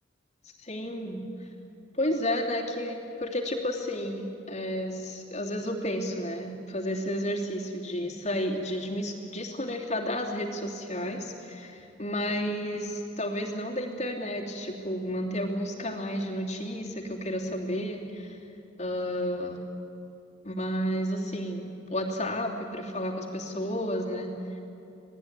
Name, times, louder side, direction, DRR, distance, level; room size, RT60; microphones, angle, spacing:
voice 1, 0.6-1.2 1.9-18.4 18.8-19.6 20.4-24.3, equal, 40° left, 0 dB, 3.0 m, -32 dB
27.5 x 19.0 x 9.7 m, 2.8 s
head